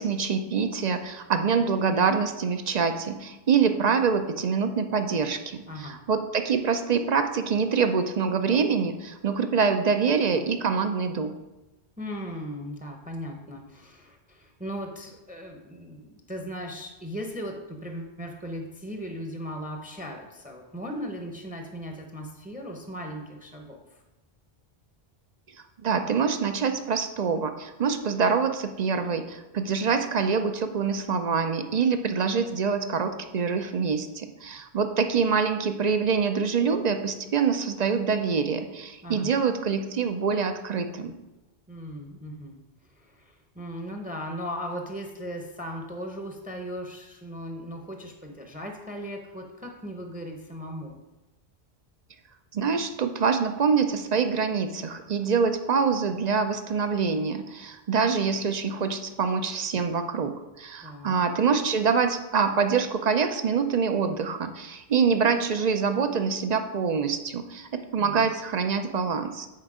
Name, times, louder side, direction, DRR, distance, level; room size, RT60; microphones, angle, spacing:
voice 1, 0.0-11.3 25.8-41.1 52.5-69.5, right 5 dB, 50° right, 8 dB, 0.6 m, -25 dB
voice 2, 5.7-6.0 12.0-24.0 39.0-39.3 41.7-42.5 42.9-51.0 60.8-61.2 68.0-68.2, equal, 10° right, 3 dB, 0.7 m, -37 dB
8.6 x 4.4 x 4.9 m, 1.0 s
omnidirectional pair, 1.0 m